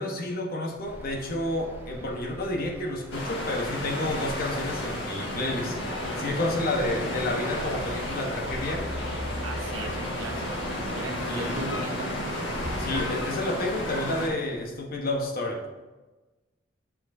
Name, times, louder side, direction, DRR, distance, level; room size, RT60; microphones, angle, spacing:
voice 1, 0.0-5.8 6.2-8.9 11.3-11.5 12.8-15.6, left 1 dB, 50° left, 1 dB, 1.2 m, -30 dB
sound 1, 0.8-15.2, equal, 10° right, 1.8 m, -43 dB
sound 2, 3.1-14.3, left 1 dB, 65° left, 1.6 m, -32 dB
voice 2, 9.4-12.1, right 3 dB, 90° right, 3 dB, 1.0 m, -38 dB
9.8 x 5.8 x 2.7 m, 1.2 s
head